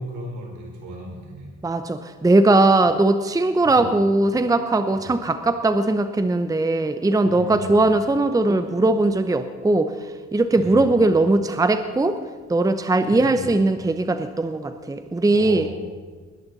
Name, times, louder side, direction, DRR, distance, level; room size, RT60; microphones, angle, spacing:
voice 1, 0.0-1.5 3.6-3.8 4.9-5.1 7.2-7.9 10.6-11.0 13.1-13.5 15.3-15.7, right 1 dB, 75° right, 0 dB, 4.4 m, -35 dB
voice 2, 1.6-12.2 12.5-15.7, right 2 dB, 10° right, 9 dB, 0.8 m, -20 dB
20.0 x 11.0 x 4.1 m, 1.5 s
cardioid pair, 90°, 30 cm